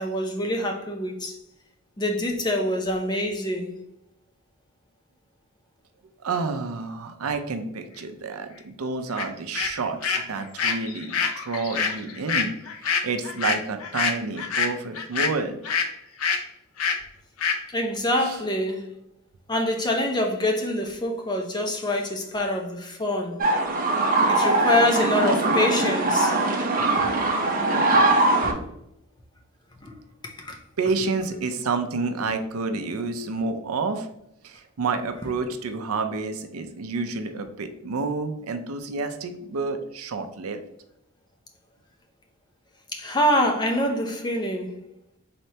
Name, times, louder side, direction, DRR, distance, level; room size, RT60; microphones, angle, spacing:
voice 1, 0.0-1.4 2.0-3.7 17.7-19.0 19.5-23.5 24.3-26.4 27.0-27.1 29.8-30.0 30.2-30.6 42.9-44.8, left 1 dB, 20° left, 0.6 m, -25 dB
voice 2, 6.2-12.5 13.0-15.6 18.2-18.4 30.8-34.1 34.4-40.6, right 4 dB, 85° right, 0.5 m, -29 dB
sound 1, 9.2-9.3 9.5-15.9 16.2-16.4 16.8-17.0 17.4-17.6, left 5 dB, 80° left, 0.5 m, -26 dB
sound 2, 23.4-28.5, right 2 dB, 40° right, 0.7 m, -21 dB
4.2 x 3.3 x 2.7 m
head